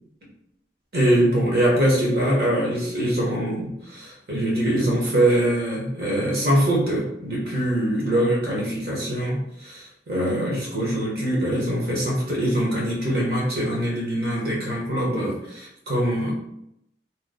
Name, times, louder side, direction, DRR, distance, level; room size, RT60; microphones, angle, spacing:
voice 1, 0.9-16.3, right 1 dB, 55° right, -4 dB, 1.2 m, -23 dB
3.0 x 2.3 x 3.7 m, 0.78 s
head